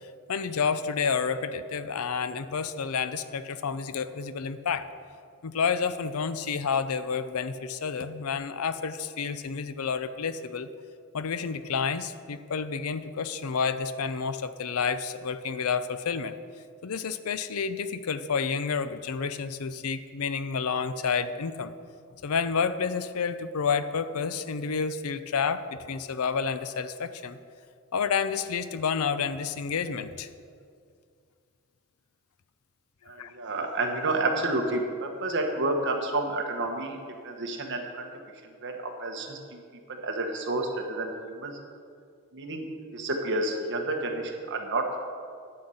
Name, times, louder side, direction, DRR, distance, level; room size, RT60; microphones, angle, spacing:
voice 1, 0.3-4.9 5.4-10.7 11.1-16.4 16.8-21.7 22.2-27.4 27.9-30.3 33.2-33.3, left 6 dB, 70° left, 12 dB, 0.5 m, -30 dB
voice 2, 33.1-37.0 37.2-38.1 38.6-39.6 39.9-41.6 42.3-45.0, right 2 dB, 55° right, 3 dB, 1.3 m, -30 dB
10.5 x 5.7 x 7.8 m, 2.3 s
head